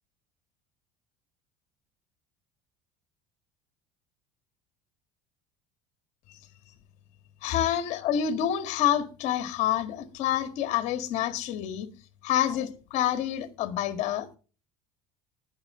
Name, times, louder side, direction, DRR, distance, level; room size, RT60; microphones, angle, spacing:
voice 1, 7.4-11.9 12.2-14.4, left 10 dB, 65° left, 1.8 m, -27 dB
19.5 x 6.6 x 3.8 m
supercardioid pair, 110°, 13 cm